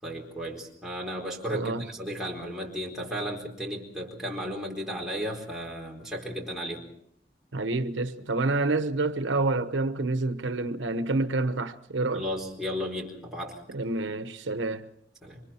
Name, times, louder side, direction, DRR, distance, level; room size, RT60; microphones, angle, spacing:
voice 1, 0.0-6.9 12.1-13.6 15.2-15.4, equal, ahead, 4.4 m, -34 dB
voice 2, 1.5-1.9 7.5-12.3 13.7-14.9, right 2 dB, 85° right, 1.1 m, -28 dB
28.5 x 24.0 x 4.4 m
head